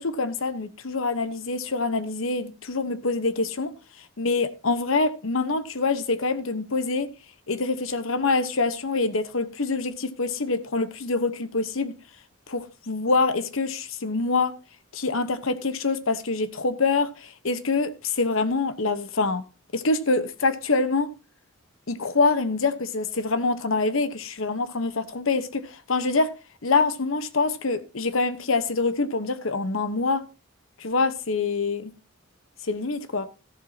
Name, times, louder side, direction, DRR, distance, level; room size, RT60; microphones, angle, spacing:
voice 1, 0.0-3.7 4.2-7.1 7.5-11.9 12.5-14.5 14.9-19.4 19.7-21.1 21.9-26.3 26.6-30.2 30.8-31.9 32.6-33.3, left 3 dB, 80° left, 1.1 m, -25 dB
14.0 x 11.0 x 2.8 m
head